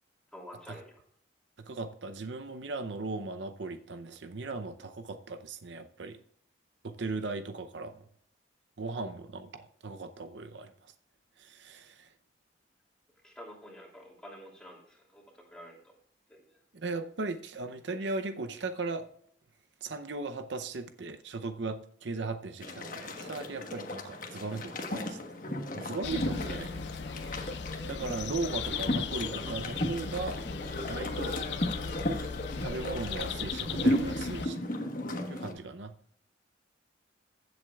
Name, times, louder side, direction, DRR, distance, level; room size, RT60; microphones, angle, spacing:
voice 1, 0.3-1.0 13.2-15.9 16.3-16.6, equal, 5° left, -2 dB, 2.8 m, -49 dB
voice 2, 1.6-6.2 6.8-8.1 8.8-10.9 11.4-12.1 16.7-19.1 19.8-25.2 25.7-26.9 27.1-30.4 30.9-31.4 32.6-34.6 35.3-35.9, right 3 dB, 70° right, 8 dB, 0.7 m, -37 dB
sound 1, 22.6-35.5, left 1 dB, 45° left, 1.3 m, -35 dB
sound 2, 26.0-34.5, left 6 dB, 65° left, 0.5 m, -38 dB
15.5 x 7.7 x 2.4 m, 0.64 s
head